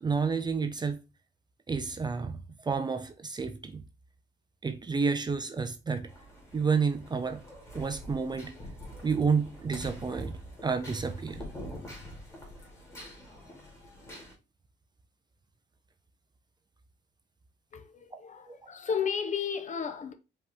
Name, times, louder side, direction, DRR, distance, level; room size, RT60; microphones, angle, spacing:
voice 1, 0.0-1.0 1.7-3.8 4.6-6.1 6.5-7.4 7.7-8.6 9.0-11.4 18.5-18.6, right 5 dB, 25° right, 0.4 m, -30 dB
sound 1, 6.1-14.3, equal, 15° left, 2.1 m, -46 dB
voice 2, 17.7-20.1, left 6 dB, 40° left, 0.7 m, -33 dB
5.0 x 3.0 x 3.4 m
cardioid pair, 135°, 19 cm